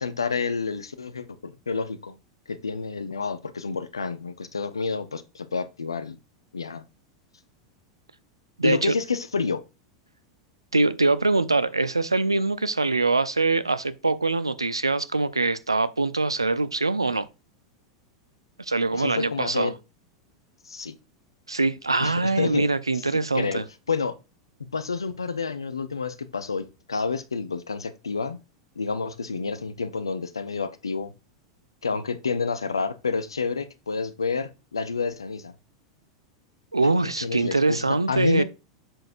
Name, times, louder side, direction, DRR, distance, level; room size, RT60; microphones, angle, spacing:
voice 1, 0.0-2.2 2.5-6.2 6.5-6.8 8.6-9.6 18.9-19.8 20.6-20.9 22.0-22.7 23.1-23.6 23.9-24.1 24.7-28.4 28.8-31.1 31.8-35.5 37.0-38.4, left 5 dB, 80° left, 0.8 m, -29 dB
voice 2, 8.6-8.9 10.7-17.3 18.6-19.7 21.5-23.6 36.7-38.4, right 3 dB, 85° right, 0.6 m, -23 dB
7.8 x 6.4 x 2.6 m
figure-of-eight pair, 90°, 2 cm